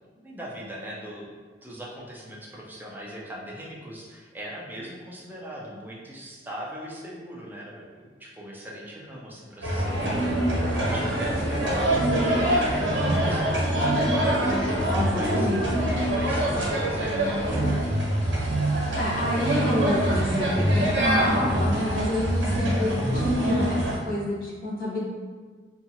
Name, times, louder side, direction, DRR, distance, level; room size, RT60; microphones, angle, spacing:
voice 1, 0.2-1.3 1.6-13.0 13.3-14.5 15.1-15.5 16.0-17.8 22.5-22.8, equal, 10° right, -4 dB, 0.4 m, -40 dB
sound 1, 9.6-24.0, right 1 dB, 90° right, 0.9 m, -24 dB
voice 2, 14.9-15.6 19.0-25.0, left 1 dB, 55° left, -6 dB, 0.8 m, -29 dB
2.8 x 2.3 x 2.6 m, 1.5 s
head